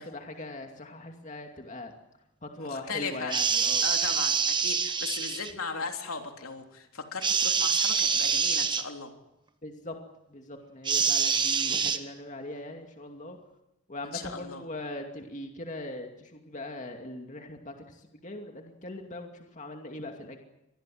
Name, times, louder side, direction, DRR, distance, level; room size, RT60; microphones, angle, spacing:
voice 1, 0.0-1.9 2.4-3.8 9.6-10.0 10.3-13.4 13.9-20.4, left 2 dB, 35° left, 3 dB, 2.5 m, -40 dB
voice 2, 2.6-3.3 3.8-9.1 14.0-14.6, left 5 dB, 80° left, 4 dB, 3.4 m, -37 dB
sound 1, 3.3-5.5 7.2-8.8 10.8-12.0, right 6 dB, 20° right, 1.2 m, -26 dB
25.5 x 20.0 x 7.8 m, 0.89 s
head